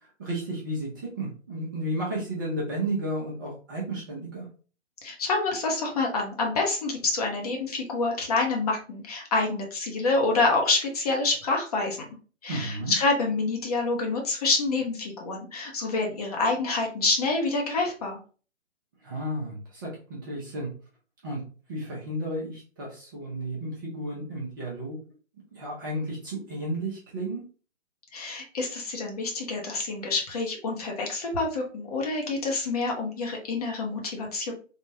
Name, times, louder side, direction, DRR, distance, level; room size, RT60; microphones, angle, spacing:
voice 1, 0.0-4.5 12.5-12.9 19.0-20.7 21.2-21.4 21.7-25.0 25.5-27.4, right 1 dB, 15° right, -5 dB, 0.5 m, -33 dB
voice 2, 5.0-12.0 12.4-18.2 28.1-34.5, left 3 dB, 30° left, 1 dB, 0.7 m, -27 dB
3.4 x 2.1 x 2.6 m, 0.38 s
figure-of-eight pair, 140°, 38 cm